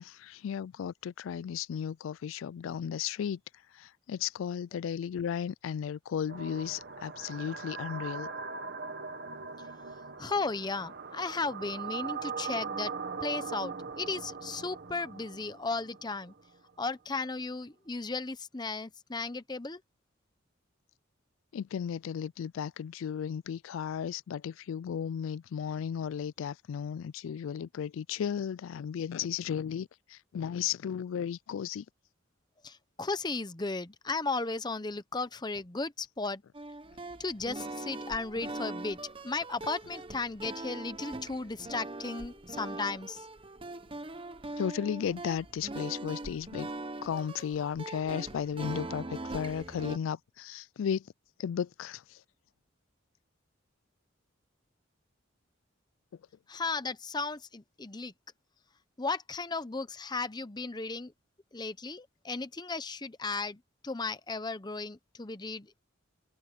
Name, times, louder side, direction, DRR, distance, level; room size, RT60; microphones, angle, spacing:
voice 1, 0.0-3.4 3.8-8.3 21.5-31.8 44.6-46.7 47.0-51.0 51.4-52.0, left 8 dB, 80° left, 0.3 m, -35 dB
sound 1, 6.3-16.4, right 5 dB, 55° right, 1.4 m, -40 dB
voice 2, 10.2-12.9 13.2-16.3 16.8-19.8 32.6-36.4 37.2-43.3 56.5-58.1 59.0-61.1 61.5-65.8, left 3 dB, 20° left, 0.8 m, -35 dB
sound 2, 36.5-50.0, right 2 dB, 25° right, 1.0 m, -41 dB
head